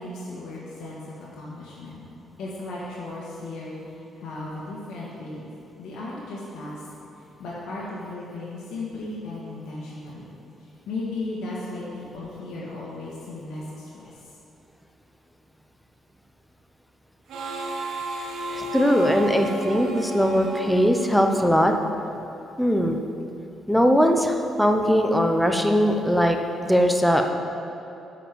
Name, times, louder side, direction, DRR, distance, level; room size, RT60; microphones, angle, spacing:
voice 1, 0.0-2.0 2.4-5.4 5.8-6.9 7.4-10.3 10.6-14.2, left 2 dB, 75° left, -6 dB, 1.6 m, -36 dB
Harmonica, 17.3-21.8, right 1 dB, 75° right, 1.2 m, -33 dB
voice 2, 18.5-21.7 22.6-23.0 23.7-27.3, equal, ahead, 4 dB, 0.7 m, -20 dB
7.6 x 5.3 x 7.0 m, 2.9 s
cardioid pair, 90°, 0 cm